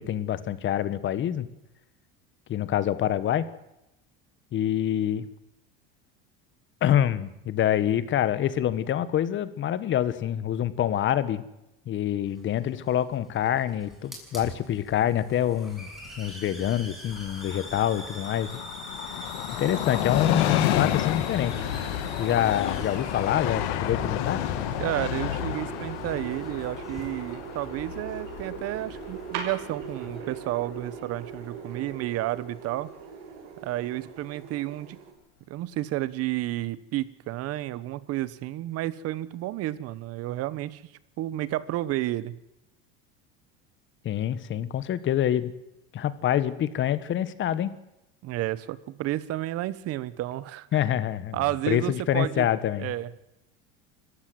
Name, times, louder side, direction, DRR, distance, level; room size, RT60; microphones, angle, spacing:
voice 1, 0.0-1.5 2.5-3.5 4.5-5.2 6.8-11.5 11.9-15.9 16.2-18.6 19.6-21.6 22.2-24.4 44.0-45.5 45.9-47.7 50.7-51.4 51.7-52.9, left 11 dB, 40° left, 15 dB, 1.5 m, -26 dB
Hiss, 12.3-30.2, equal, ahead, 6.6 m, -45 dB
Train, 17.1-30.4 30.8-30.9, left 12 dB, 85° left, 2.0 m, -30 dB
sound 1, 21.4-35.1, right 6 dB, 70° right, 6.4 m, -40 dB
voice 2, 24.8-32.9 33.6-35.0 35.5-40.9 41.2-42.4 48.2-50.7 51.3-52.5 52.8-53.2, right 15 dB, 50° right, 18 dB, 1.2 m, -31 dB
25.0 x 15.0 x 7.8 m, 0.87 s
supercardioid pair, 125°, 30 cm